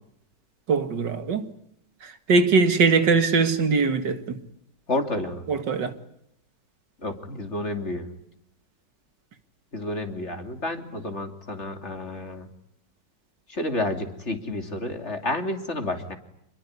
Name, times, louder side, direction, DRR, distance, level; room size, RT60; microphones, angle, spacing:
voice 1, 0.7-1.5 2.3-4.4 5.5-5.9, right 4 dB, 85° right, 2.6 m, -21 dB
voice 2, 4.9-5.4 7.0-8.1 9.7-12.5 13.5-16.2, left 2 dB, 40° left, 3.2 m, -30 dB
27.5 x 21.5 x 9.7 m
omnidirectional pair, 1.9 m